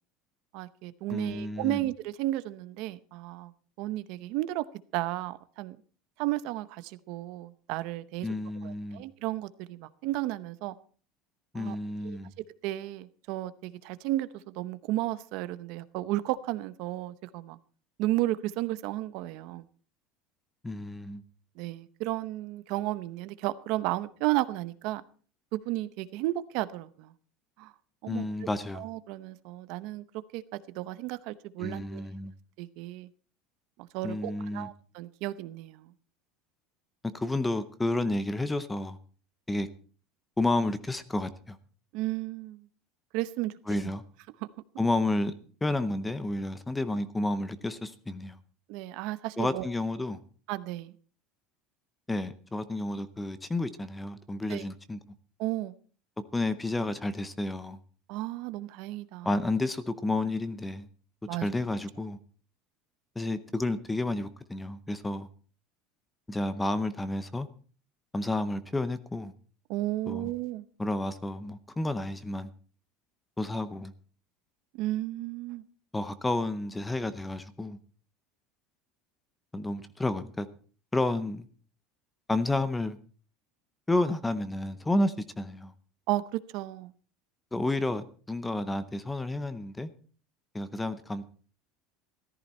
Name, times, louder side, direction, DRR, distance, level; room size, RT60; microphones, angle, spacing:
voice 1, 0.5-3.5 3.8-4.7 4.9-5.8 6.2-8.3 8.6-10.8 11.5-11.8 12.0-12.2 12.6-17.6 18.0-19.6 21.6-25.0 25.5-27.1 27.6-27.7 28.0-28.3 28.7-30.0 30.3-32.1 32.6-33.1 33.9-35.9 41.9-42.7 43.1-43.9 44.4-44.5 48.7-49.7 50.5-50.9 54.5-54.6 55.4-55.8 58.1-59.3 61.3-61.5 69.7-70.6 74.7-75.6 86.1-86.9, right 16 dB, 55° right, 0.8 m, -33 dB
voice 2, 1.1-1.8 8.2-9.0 11.5-12.3 20.6-21.2 28.1-28.8 31.6-32.3 34.0-34.7 37.1-39.0 39.5-39.7 40.4-41.6 43.7-44.0 44.8-45.3 45.6-48.4 49.4-50.2 52.1-55.0 56.3-57.8 59.2-60.9 61.4-62.2 63.2-65.3 66.3-67.5 68.1-69.3 70.1-70.3 70.8-72.5 73.4-73.9 75.9-77.8 79.5-80.5 80.9-81.5 82.3-83.0 83.9-85.7 87.5-89.9 90.5-91.2, left 2 dB, 5° left, 0.6 m, -31 dB
14.0 x 14.0 x 4.3 m
cardioid pair, 180°, 0 cm